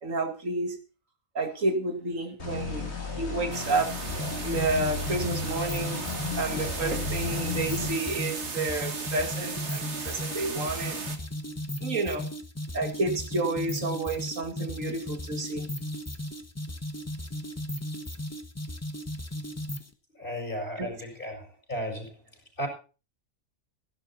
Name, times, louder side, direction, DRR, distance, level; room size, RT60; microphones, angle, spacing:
voice 1, 0.0-0.8 1.3-4.0 4.4-6.0 6.4-11.0 11.8-12.3 12.7-15.7 20.8-20.9, right 2 dB, 75° right, 7 dB, 2.4 m, -30 dB
sound 1, 2.4-7.9, left 4 dB, 55° left, 2.9 m, -34 dB
sound 2, 3.5-11.2, right 4 dB, 55° right, 1.9 m, -37 dB
sound 3, 4.1-19.9, left 1 dB, 15° left, 1.0 m, -36 dB
voice 2, 20.2-22.2 22.6-22.7, equal, 40° left, 2 dB, 5.8 m, -34 dB
16.0 x 11.0 x 4.2 m, 0.34 s
omnidirectional pair, 1.4 m